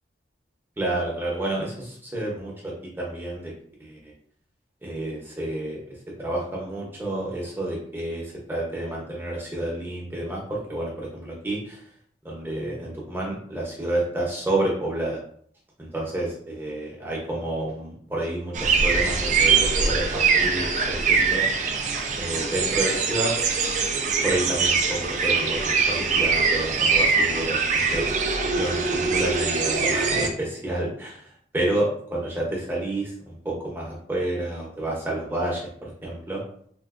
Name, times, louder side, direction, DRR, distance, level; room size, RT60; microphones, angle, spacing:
voice 1, 0.8-3.5 3.8-4.0 4.8-11.8 12.2-15.2 15.8-21.4 22.2-23.3 24.2-31.3 31.5-36.4, right 1 dB, 10° right, -3 dB, 0.7 m, -30 dB
sound 1, 18.5-30.3, right 5 dB, 40° right, 0.3 m, -23 dB
3.5 x 2.5 x 2.4 m, 0.62 s
head